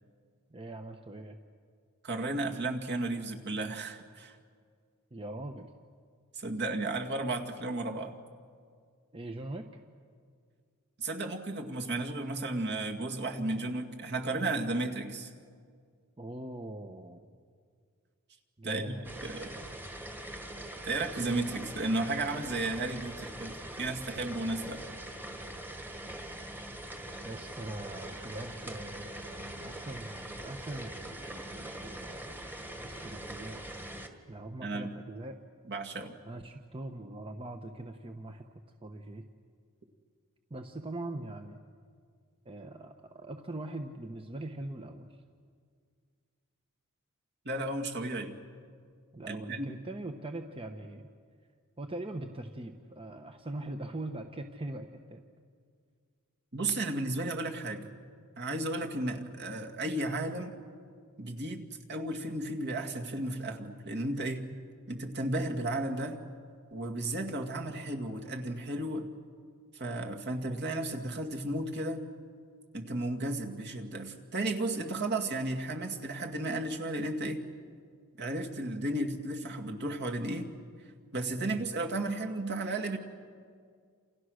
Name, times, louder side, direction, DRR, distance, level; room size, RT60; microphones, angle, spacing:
voice 1, 0.5-1.4 5.1-5.7 9.1-9.8 16.2-17.2 18.6-19.8 27.2-32.4 32.8-33.6 34.3-35.4 36.3-38.4 38.8-39.2 40.5-41.6 42.4-45.2 49.1-51.1 51.8-55.2 81.3-81.6, right 1 dB, 25° right, 5 dB, 1.0 m, -42 dB
voice 2, 2.0-4.4 6.3-8.1 11.0-15.3 18.6-18.9 19.2-19.5 20.8-24.8 34.6-34.9 35.7-36.1 47.4-48.3 49.3-49.8 56.5-57.9 58.4-60.6 61.2-64.4 64.9-66.2 66.7-69.1 69.7-72.0 72.7-77.4 78.2-80.5 81.1-83.0, right 2 dB, 50° right, 2 dB, 2.3 m, -34 dB
sound 1, 19.0-34.1, right 1 dB, 10° right, 1.7 m, -43 dB
28.5 x 28.0 x 6.5 m, 2.1 s
head